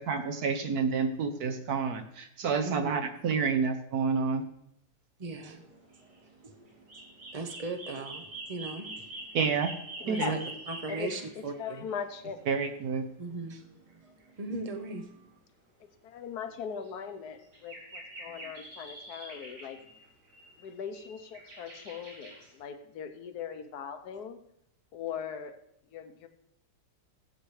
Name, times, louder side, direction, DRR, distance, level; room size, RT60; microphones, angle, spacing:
voice 1, 0.0-4.4 9.3-9.7 10.1-10.4 12.5-13.0, right 5 dB, 65° right, 6 dB, 1.2 m, -29 dB
voice 2, 2.6-3.0 5.2-5.7 6.4-6.7 7.3-8.9 10.0-10.4 10.7-11.9 13.2-13.6 14.0-15.1, right 3 dB, 40° right, 6 dB, 0.5 m, -38 dB
sound 1, 5.4-5.5 5.7-6.2 6.5-12.0 13.3-13.4 13.9-14.0 14.2-14.3 14.6-14.7 14.9-15.0 16.8-16.9 17.5-22.5, right 2 dB, 85° right, 3.2 m, -45 dB
voice 3, 10.0-10.4 10.9-12.4 15.8-19.8 20.6-24.4 24.9-25.6 25.9-26.3, left 7 dB, 65° left, 8 dB, 1.3 m, -40 dB
15.5 x 8.2 x 3.2 m, 0.75 s
omnidirectional pair, 1.9 m